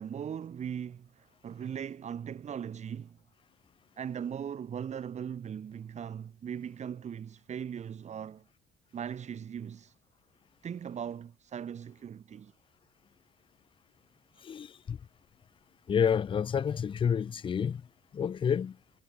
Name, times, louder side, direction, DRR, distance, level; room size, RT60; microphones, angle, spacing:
voice 1, 0.0-3.2 4.0-8.4 8.9-10.0 10.6-12.5, right 8 dB, 40° right, 1.9 m, -39 dB
voice 2, 14.4-15.0 15.9-17.8 18.1-18.8, left 7 dB, 30° left, 0.6 m, -29 dB
cardioid pair, 110°, 17 cm